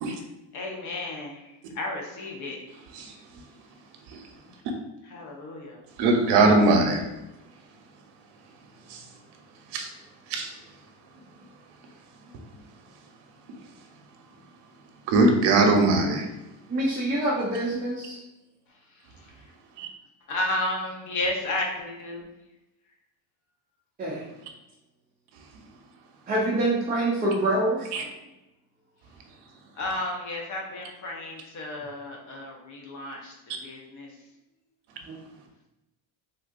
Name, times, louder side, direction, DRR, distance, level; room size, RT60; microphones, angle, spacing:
voice 1, 0.5-1.5 1.7-2.6 5.0-5.8 20.3-22.3 29.8-34.1, left 2 dB, 40° left, -1 dB, 0.9 m, -32 dB
voice 2, 6.0-7.0 8.9-9.0 9.7-9.9 10.3-10.5 15.1-16.3 19.8-19.9 27.9-28.0, right 2 dB, 60° right, 3 dB, 0.8 m, -20 dB
voice 3, 16.7-18.2 24.0-24.2 26.3-27.8, right 1 dB, 20° right, -6 dB, 0.6 m, -25 dB
3.6 x 2.6 x 2.5 m, 0.95 s
supercardioid pair, 125°, 45 cm